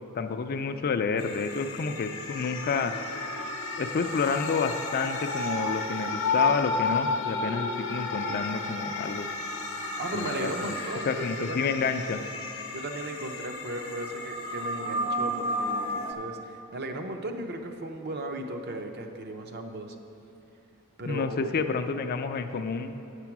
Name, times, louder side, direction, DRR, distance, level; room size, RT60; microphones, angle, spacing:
voice 1, 0.1-2.9 3.8-9.3 10.1-10.7 11.1-12.2 21.1-22.9, left 5 dB, 45° left, 8 dB, 0.4 m, -29 dB
sound 1, 1.2-16.1, left 2 dB, 65° left, 0.8 m, -32 dB
voice 2, 10.0-11.8 12.7-19.9 21.0-21.5, right 1 dB, 50° right, 4 dB, 0.7 m, -36 dB
8.2 x 6.9 x 5.9 m, 2.9 s
head